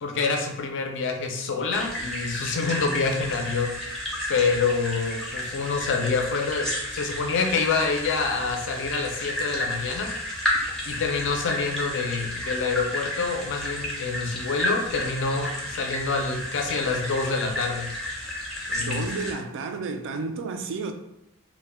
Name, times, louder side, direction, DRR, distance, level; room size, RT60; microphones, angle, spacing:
voice 1, 0.0-3.7 4.3-10.1 10.9-17.9 18.7-19.0, left 4 dB, 55° left, 0.4 m, -27 dB
sound 1, 1.7-19.3, left 1 dB, ahead, 0.5 m, -32 dB
voice 2, 18.8-20.9, right 4 dB, 55° right, 0.3 m, -31 dB
2.1 x 2.1 x 3.3 m
head